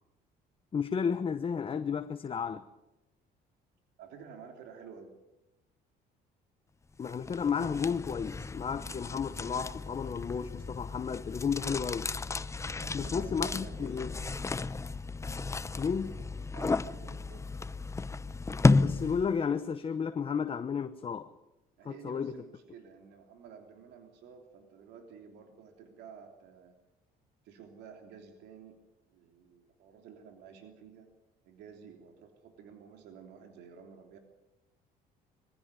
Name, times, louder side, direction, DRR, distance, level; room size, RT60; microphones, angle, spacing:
voice 1, 0.7-2.6 7.0-12.1 12.9-14.1 15.8-16.2 18.7-21.3 21.8-22.4, left 6 dB, 35° left, 1.0 m, -33 dB
voice 2, 4.0-5.1 12.8-14.0 16.5-17.6 21.8-26.8 27.4-28.8 29.1-31.1 31.4-34.2, right 6 dB, 85° right, 3.3 m, -51 dB
sound 1, 7.0-19.4, left 3 dB, 15° left, 0.7 m, -33 dB
22.5 x 16.0 x 9.8 m
cardioid pair, 110°, 17 cm